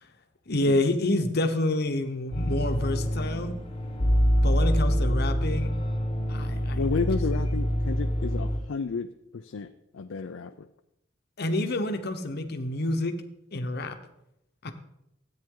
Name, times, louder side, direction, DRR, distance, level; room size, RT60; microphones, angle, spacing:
voice 1, 0.5-3.5 4.4-5.7 6.3-6.8 11.4-13.1 13.5-14.0 14.6-14.7, left 2 dB, 55° left, 7 dB, 1.0 m, -28 dB
sound 1, 2.3-8.6, equal, 25° left, 1.1 m, -26 dB
voice 2, 6.7-10.7, left 4 dB, 90° left, 7 dB, 0.5 m, -32 dB
13.5 x 8.9 x 3.8 m, 0.82 s
head